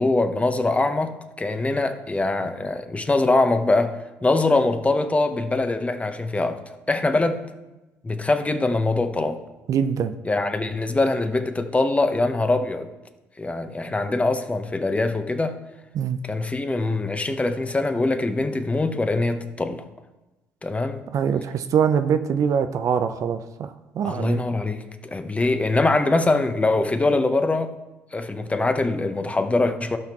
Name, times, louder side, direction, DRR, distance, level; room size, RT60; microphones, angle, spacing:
voice 1, 0.0-7.4 8.0-9.4 10.2-12.9 13.4-15.5 16.2-19.8 20.6-21.0 24.0-27.7 28.1-30.0, left 2 dB, 20° left, 7 dB, 1.1 m, -23 dB
voice 2, 9.7-10.1 15.9-16.2 21.1-24.4, right 7 dB, 50° right, 9 dB, 0.6 m, -23 dB
16.0 x 5.7 x 3.1 m, 1.0 s
hypercardioid pair, 55°, 7 cm